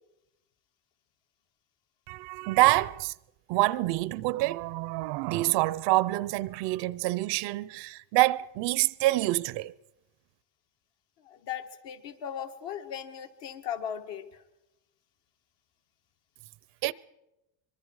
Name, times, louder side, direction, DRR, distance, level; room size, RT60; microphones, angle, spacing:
voice 1, 2.1-3.1 3.5-9.7 16.8-16.9, right 19 dB, 60° right, 0.6 m, -26 dB
voice 2, 11.2-14.4, left 9 dB, 60° left, 1.9 m, -38 dB
24.5 x 22.5 x 4.7 m
cardioid pair, 125°, 49 cm